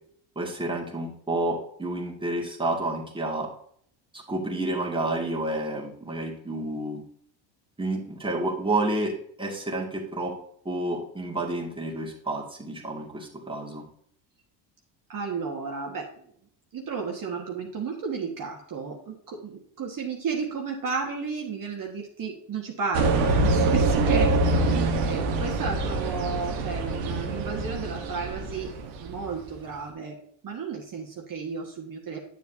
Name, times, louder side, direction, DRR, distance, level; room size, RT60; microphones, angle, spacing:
voice 1, 0.4-3.5 4.1-7.0 7.8-10.4 10.7-13.8, right 2 dB, 10° right, -1 dB, 2.1 m, -30 dB
voice 2, 15.1-16.3 16.7-28.7 29.0-30.2 30.4-32.2, right 5 dB, 40° right, 0 dB, 1.6 m, -33 dB
sound 1, 22.9-29.4, right 2 dB, 80° right, 1.5 m, -25 dB
9.2 x 7.2 x 2.8 m, 0.64 s
supercardioid pair, 80°, 49 cm